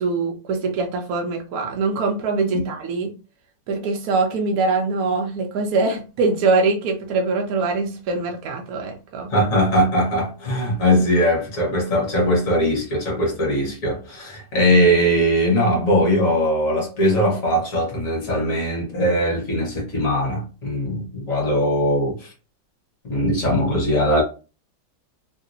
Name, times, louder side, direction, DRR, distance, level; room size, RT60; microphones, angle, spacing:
voice 1, 0.0-3.1 3.7-9.3, right 3 dB, 75° right, 0.8 m, -23 dB
voice 2, 9.3-22.3 23.0-24.2, equal, 45° left, 1.4 m, -20 dB
3.3 x 2.8 x 2.5 m
omnidirectional pair, 2.2 m